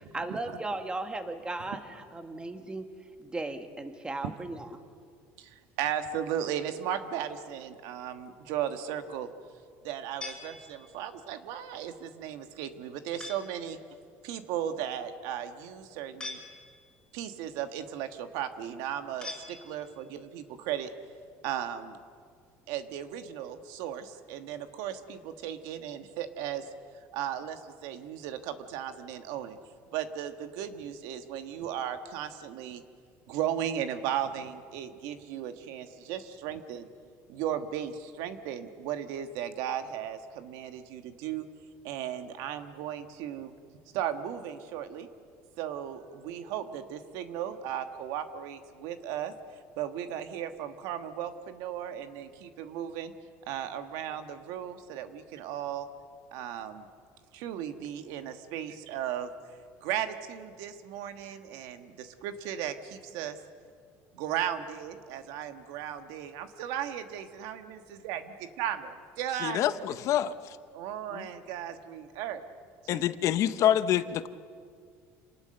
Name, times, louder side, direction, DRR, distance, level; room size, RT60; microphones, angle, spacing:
voice 1, 0.0-2.9 3.2-4.7, right 2 dB, 15° right, 6 dB, 1.8 m, -36 dB
voice 2, 5.4-9.3 9.8-13.8 14.2-16.4 17.1-20.9 21.4-22.0 22.7-26.7 27.1-29.6 29.9-32.8 33.3-36.9 37.3-41.5 41.8-43.5 43.9-45.1 45.6-49.3 49.8-53.1 53.5-55.9 56.3-56.9 57.3-59.3 59.8-63.4 64.1-69.9 70.7-72.4 72.8-73.1, right 10 dB, 75° right, 8 dB, 1.5 m, -36 dB
sound 1, 10.2-11.1 13.2-13.7 16.2-17.0 19.2-20.1, left 3 dB, 10° left, 4.6 m, -43 dB
voice 3, 69.4-70.3 71.1-71.3 72.9-74.3, left 11 dB, 55° left, 13 dB, 0.8 m, -26 dB
27.5 x 19.0 x 6.7 m, 2.1 s
cardioid pair, 120°, 6 cm